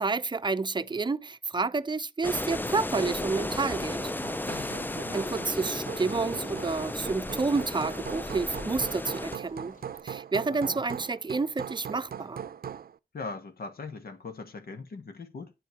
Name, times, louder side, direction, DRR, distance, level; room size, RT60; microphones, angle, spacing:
voice 1, 0.0-4.1 4.5-4.6 5.1-9.8 10.0-12.4, right 4 dB, 30° right, 0.6 m, -30 dB
sound 1, 2.2-9.4, left 2 dB, 10° left, 0.5 m, -34 dB
Hammer, 3.5-13.0, right 8 dB, 75° right, 0.5 m, -41 dB
voice 2, 4.4-5.3 10.5-10.8 13.1-15.5, left 4 dB, 80° left, 2.0 m, -41 dB
Rain, 4.6-10.0, left 3 dB, 65° left, 5.3 m, -57 dB
9.1 x 8.1 x 4.8 m
wide cardioid pair, 80°, 16 cm